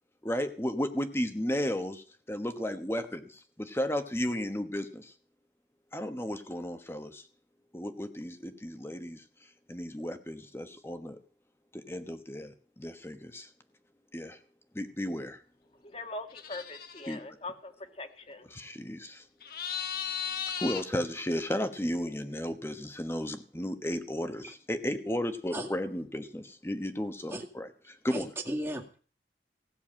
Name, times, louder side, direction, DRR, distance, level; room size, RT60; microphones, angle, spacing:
voice 1, 0.2-5.1 5.9-7.3 7.7-9.2 9.7-11.2 11.7-13.5 14.1-14.4 14.7-15.4 17.1-17.2 18.5-19.2 20.6-27.7 28.0-28.3, equal, 15° left, 8 dB, 1.1 m, -34 dB
voice 2, 15.8-18.5, left 2 dB, 35° left, 7 dB, 1.6 m, -42 dB
sound 1, 16.3-17.2 19.4-20.8, left 8 dB, 55° left, 1.4 m, -36 dB
voice 3, 28.1-29.0, right 1 dB, 15° right, 0 dB, 2.0 m, -36 dB
16.5 x 7.0 x 8.7 m, 0.41 s
head